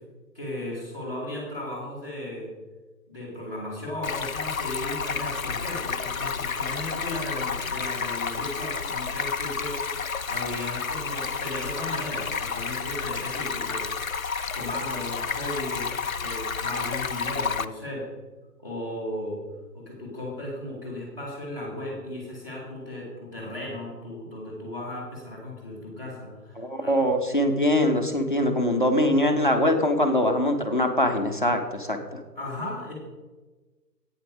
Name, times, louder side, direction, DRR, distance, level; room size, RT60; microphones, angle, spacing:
voice 1, 0.3-2.5 3.1-9.8 10.3-14.0 14.5-18.1 18.6-19.4 19.7-26.9 32.4-32.9, left 1 dB, 10° right, -9 dB, 2.6 m, -36 dB
Stream, 4.0-17.7, left 5 dB, 55° left, 0.6 m, -31 dB
voice 2, 26.6-32.2, left 1 dB, 30° left, 3 dB, 0.9 m, -23 dB
11.5 x 9.0 x 5.2 m, 1.3 s
figure-of-eight pair, 180°, 49 cm